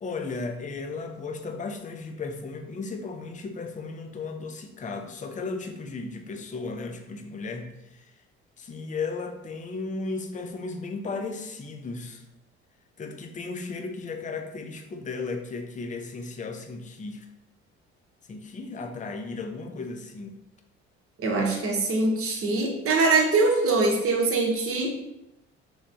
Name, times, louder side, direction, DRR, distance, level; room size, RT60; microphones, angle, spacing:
voice 1, 0.0-8.1 8.6-12.2 13.0-17.3 18.3-20.3, left 3 dB, 25° left, 5 dB, 0.5 m, -35 dB
voice 2, 21.2-25.0, right 3 dB, 45° right, 1 dB, 0.9 m, -23 dB
3.3 x 3.1 x 2.6 m, 0.91 s
hypercardioid pair, 60°, 32 cm